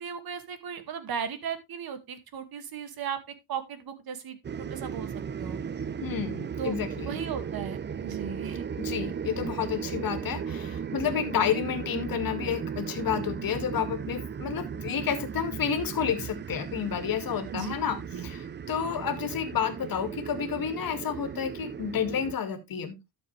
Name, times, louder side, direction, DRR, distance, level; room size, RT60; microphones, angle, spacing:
voice 1, 0.0-4.4 4.7-5.1 5.4-5.6 6.6-6.8 7.1-8.7 17.5-17.7 18.1-18.3, right 7 dB, 55° right, 10 dB, 2.1 m, -36 dB
sound 1, 4.4-22.4, right 7 dB, 25° right, 0.5 m, -36 dB
voice 2, 6.0-7.2 8.8-23.0, left 8 dB, 50° left, 9 dB, 2.3 m, -30 dB
12.5 x 7.0 x 3.3 m, 0.22 s
cardioid pair, 110°, 44 cm